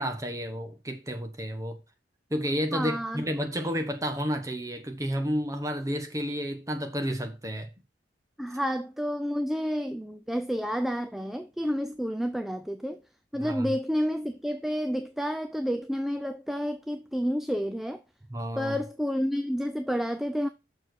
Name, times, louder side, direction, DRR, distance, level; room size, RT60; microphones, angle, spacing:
voice 1, 0.0-1.8 2.3-7.7 13.3-13.7 18.3-18.8, equal, 20° right, 1.1 m, -31 dB
voice 2, 2.7-3.2 8.4-13.0 13.3-18.0 18.6-20.5, equal, ahead, 0.4 m, -30 dB
6.5 x 4.4 x 6.2 m
head